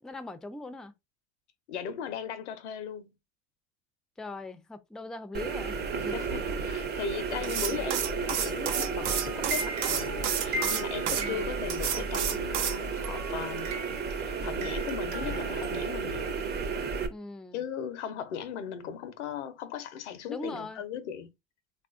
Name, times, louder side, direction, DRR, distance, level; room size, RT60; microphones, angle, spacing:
voice 1, 0.0-0.9 4.2-6.2 11.2-11.6 17.1-17.6 20.3-20.8, left 2 dB, ahead, 0.4 m, -41 dB
voice 2, 1.7-3.1 5.9-13.7 14.4-16.4 17.5-21.3, left 8 dB, 80° left, 0.7 m, -38 dB
sound 1, 5.3-17.1, right 5 dB, 30° right, 0.7 m, -33 dB
sound 2, 7.4-11.2 11.7-12.8, right 8 dB, 85° right, 0.7 m, -30 dB
sound 3, 8.7-12.1 13.0-14.3 14.6-16.1, right 1 dB, 65° right, 1.0 m, -39 dB
3.5 x 2.4 x 2.5 m
hypercardioid pair, 80°, 35 cm